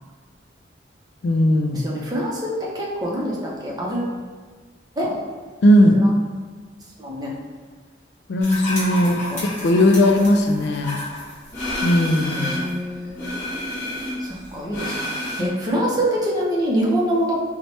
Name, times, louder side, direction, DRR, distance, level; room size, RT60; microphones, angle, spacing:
voice 1, 1.2-1.9 5.6-6.0 8.3-9.2 9.6-11.0 11.8-12.5 15.4-15.6, left 1 dB, 65° left, 4 dB, 0.3 m, -17 dB
voice 2, 1.7-3.3 3.6-4.1 5.0-5.1 6.0-6.1 7.0-7.3 9.3-9.4 12.4-13.3 14.5-17.4, equal, 20° right, -4 dB, 0.6 m, -25 dB
sound 1, 8.4-12.8 13.1-15.4, left 1 dB, 15° left, 1.2 m, -30 dB
4.5 x 2.1 x 2.8 m, 1.5 s
head